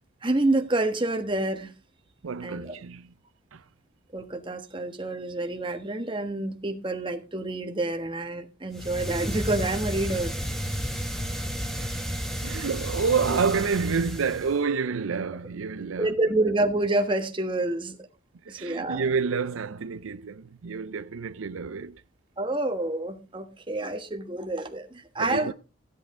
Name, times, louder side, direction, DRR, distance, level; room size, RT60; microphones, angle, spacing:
voice 1, 0.2-1.7 2.4-2.7 4.1-10.4 16.0-18.0 18.5-19.0 22.4-25.5, right 2 dB, 25° right, 1.3 m, -28 dB
voice 2, 2.2-3.1 3.5-3.6 11.7-12.0 12.4-16.1 18.5-22.0 25.2-25.5, right 5 dB, 85° right, 0.5 m, -29 dB
sound 1, 8.7-14.6, equal, ahead, 1.5 m, -32 dB
15.0 x 8.3 x 3.7 m
head